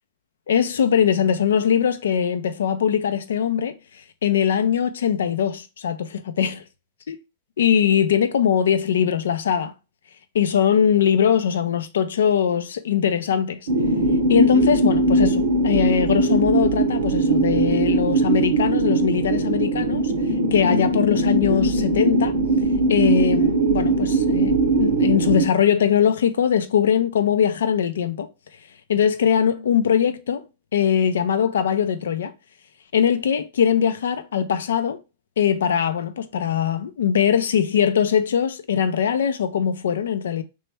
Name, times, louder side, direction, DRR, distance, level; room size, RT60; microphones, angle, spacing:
voice 1, 0.5-3.8 4.2-6.6 7.1-7.2 7.6-9.7 10.3-13.6 14.3-20.1 20.5-22.3 22.9-28.3 28.9-30.4 30.7-32.3 32.9-35.0 35.4-40.4, left 8 dB, 85° left, 0.5 m, -21 dB
sound 1, 13.7-25.5, right 2 dB, 75° right, 0.6 m, -20 dB
3.2 x 3.1 x 3.3 m
hypercardioid pair, 120°, 0 cm